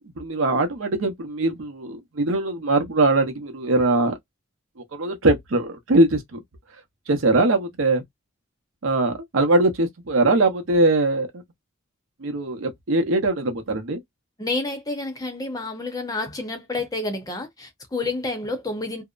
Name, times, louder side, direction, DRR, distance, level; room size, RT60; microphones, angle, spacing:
voice 1, 0.2-4.2 4.9-6.4 7.1-8.0 8.8-11.3 12.2-14.0, right 2 dB, 80° right, 0.7 m, -21 dB
voice 2, 14.4-19.0, left 2 dB, 20° left, 0.6 m, -29 dB
2.7 x 2.0 x 2.3 m
head